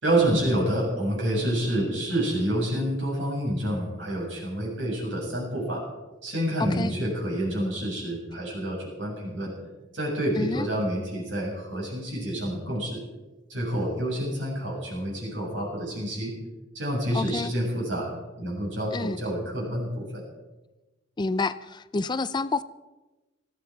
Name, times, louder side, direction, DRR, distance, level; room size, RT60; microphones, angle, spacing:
voice 1, 0.0-5.8 6.2-9.5 9.9-13.0 13.5-16.3 16.7-18.1 18.4-20.2, right 1 dB, 75° right, -3 dB, 7.4 m, -28 dB
voice 2, 6.6-6.9 10.4-10.7 17.1-17.5 18.9-19.2 21.2-22.6, left 3 dB, 25° left, 15 dB, 0.4 m, -28 dB
19.0 x 14.5 x 4.8 m, 1.1 s
head